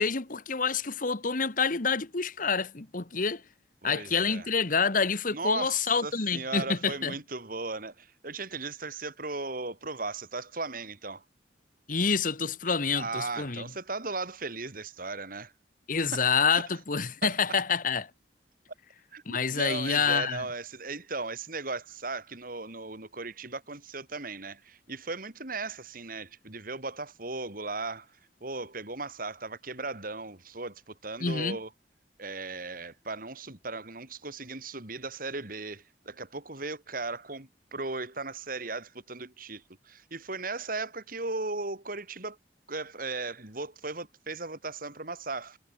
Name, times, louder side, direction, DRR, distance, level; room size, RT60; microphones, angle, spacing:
voice 1, 0.0-3.4 3.8-7.1 11.9-13.7 15.9-18.1 19.3-20.5 31.2-31.6, left 5 dB, 50° left, 1.4 m, -27 dB
voice 2, 3.8-4.5 5.3-11.2 12.9-15.5 16.0-16.6 17.2-17.3 19.1-28.1 28.4-31.7 32.2-42.4 42.7-45.6, right 3 dB, 55° right, 3.9 m, -37 dB
head